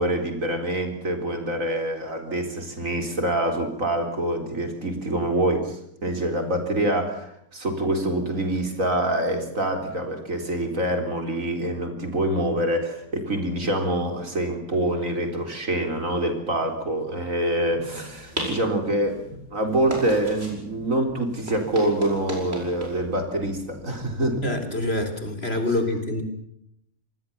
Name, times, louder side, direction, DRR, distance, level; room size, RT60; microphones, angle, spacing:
voice 1, 0.0-19.2 19.5-24.4, right 1 dB, 65° right, 6 dB, 4.4 m, -25 dB
sound 1, 17.6-25.2, equal, 45° right, 8.1 m, -38 dB
voice 2, 24.4-26.2, left 2 dB, 45° left, 8 dB, 4.1 m, -26 dB
27.0 x 20.0 x 7.2 m, 0.74 s
omnidirectional pair, 1.5 m